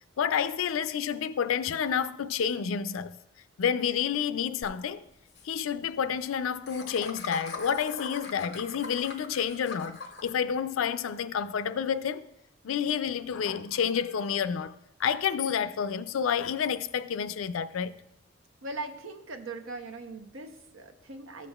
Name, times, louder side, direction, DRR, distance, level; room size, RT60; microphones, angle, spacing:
voice 1, 0.2-3.2 3.6-5.0 5.4-12.3 12.6-17.9, left 7 dB, 85° left, 0.4 m, -29 dB
Laughter, 4.6-4.7 5.0-5.1 5.3-5.5 6.7-10.3, left 4 dB, 55° left, 0.9 m, -41 dB
voice 2, 18.6-21.5, right 2 dB, 80° right, 0.8 m, -40 dB
13.5 x 7.0 x 2.3 m
head